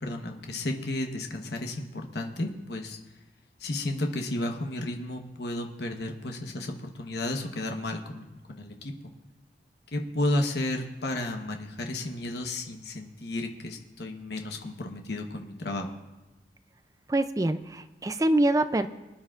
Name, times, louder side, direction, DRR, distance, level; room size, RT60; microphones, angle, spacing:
voice 1, 0.0-3.0 3.6-8.9 9.9-15.9, left 1 dB, 70° left, 3 dB, 1.1 m, -33 dB
voice 2, 17.1-18.9, right 1 dB, 20° right, 10 dB, 0.4 m, -25 dB
23.5 x 10.5 x 2.5 m, 1.1 s
head